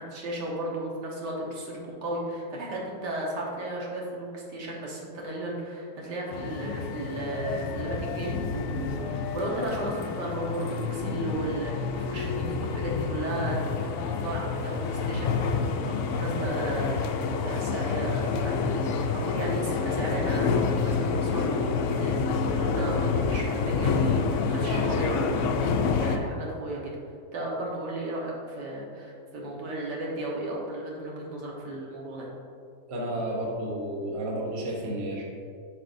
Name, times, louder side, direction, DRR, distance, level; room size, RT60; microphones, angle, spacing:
voice 1, 0.0-22.2 22.5-26.9 27.3-32.3, right 1 dB, 85° right, -3 dB, 1.8 m, -34 dB
sound 1, 6.3-26.2, left 5 dB, 75° left, 0.6 m, -28 dB
voice 2, 32.9-35.2, right 1 dB, 45° right, -2 dB, 1.2 m, -31 dB
9.1 x 5.2 x 2.6 m, 2.4 s
omnidirectional pair, 1.8 m